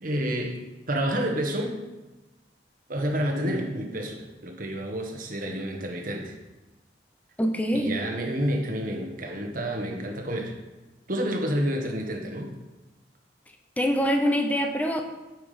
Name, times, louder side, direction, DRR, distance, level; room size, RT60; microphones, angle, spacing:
voice 1, 0.0-0.6 0.9-1.8 2.9-6.3 7.7-10.6 11.1-12.5, equal, 50° right, 2 dB, 1.5 m, -29 dB
voice 2, 7.4-8.0 13.8-15.0, equal, 10° left, 4 dB, 0.9 m, -24 dB
9.4 x 5.9 x 5.2 m, 1.1 s
head